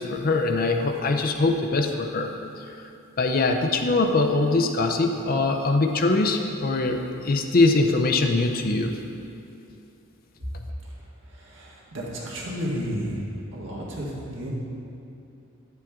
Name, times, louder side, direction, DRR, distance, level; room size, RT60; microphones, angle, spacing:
voice 1, 0.0-2.3 3.2-8.9, left 3 dB, 45° left, 4 dB, 0.5 m, -22 dB
voice 2, 11.3-13.2 13.5-14.5, equal, 65° right, -4 dB, 1.8 m, -32 dB
10.0 x 7.5 x 3.6 m, 2.7 s
head